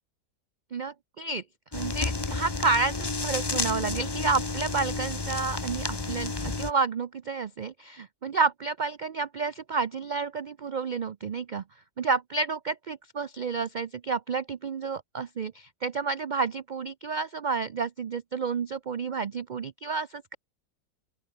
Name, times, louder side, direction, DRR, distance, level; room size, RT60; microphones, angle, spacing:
voice 1, 0.7-1.4 1.7-11.6 12.0-20.3, right 4 dB, 75° right, 0.4 m, -30 dB
sound 1, 1.7-6.7, left 3 dB, 20° left, 0.9 m, -31 dB
open air
omnidirectional pair, 1.6 m